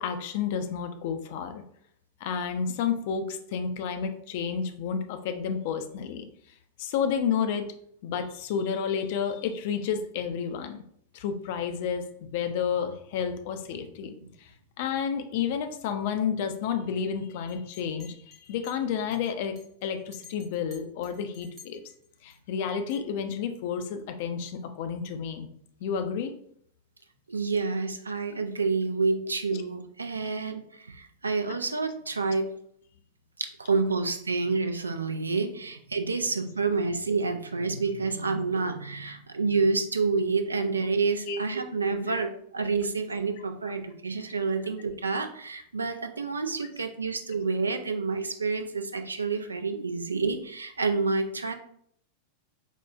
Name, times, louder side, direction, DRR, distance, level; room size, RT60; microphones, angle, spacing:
voice 1, 0.0-1.6 2.2-6.2 6.8-7.7 8.0-10.8 11.1-14.1 14.4-14.5 14.8-19.6 19.8-21.8 22.2-25.5 25.8-26.3 29.3-29.4 40.6-40.7 41.2-41.4 42.0-42.2 46.6-46.7, left 7 dB, 50° left, 7 dB, 0.4 m, -31 dB
Chink clink, 17.5-22.3 22.9-23.1, left 5 dB, 25° right, 1.1 m, -53 dB
voice 2, 27.3-32.5 33.4-51.5, right 4 dB, 75° right, 7 dB, 0.3 m, -28 dB
4.3 x 2.2 x 2.4 m, 0.67 s
figure-of-eight pair, 90°, 0 cm